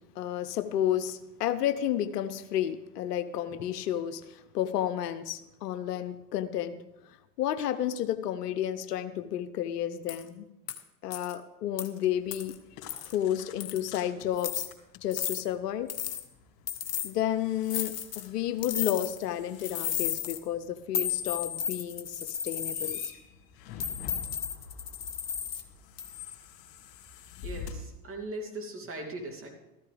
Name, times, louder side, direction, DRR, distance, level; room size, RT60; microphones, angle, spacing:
voice 1, 0.2-6.8 7.4-10.5 11.0-12.5 13.1-14.6 15.0-15.9 17.0-23.0, left 11 dB, 70° left, 12 dB, 0.9 m, -31 dB
sound 1, 10.1-10.2 10.7-10.8 11.1-11.3 11.8-11.9 12.3-12.5 12.9-13.1 13.6-13.9 14.4-14.7 15.1-15.4 15.9-16.2 16.7-17.1 17.7-18.3 18.6-19.2 19.6-20.4 20.9-23.1 23.8-25.6 26.0-26.3, left 8 dB, 30° left, 1.2 m, -34 dB
sound 2, 12.2-27.7, left 5 dB, 50° left, 3.0 m, -49 dB
voice 2, 27.4-29.5, right 1 dB, 25° right, 1 dB, 2.9 m, -39 dB
14.0 x 14.0 x 3.4 m, 0.96 s
hypercardioid pair, 85°, 49 cm